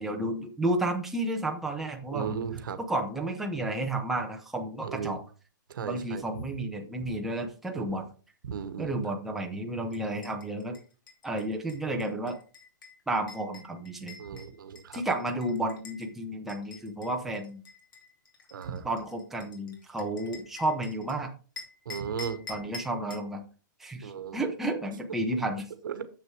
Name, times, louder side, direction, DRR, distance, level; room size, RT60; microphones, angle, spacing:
voice 1, 0.0-2.4 2.8-5.2 5.9-8.1 8.8-10.8 11.2-12.4 13.1-14.2 14.9-17.6 18.8-21.3 22.5-23.4 23.8-25.7, right 1 dB, 5° right, 2 dB, 0.8 m, -32 dB
voice 2, 2.1-2.8 4.8-5.2 5.7-6.4 7.0-7.1 8.4-9.0 14.2-15.0 18.5-18.9 21.8-22.4 24.0-24.4 25.8-26.1, right 7 dB, 75° right, 12 dB, 1.3 m, -35 dB
sound 1, 9.9-16.1 16.5-21.1 21.6-23.3, left 4 dB, 85° left, 3.0 m, -47 dB
7.3 x 6.6 x 4.6 m, 0.37 s
hypercardioid pair, 160°, 11 cm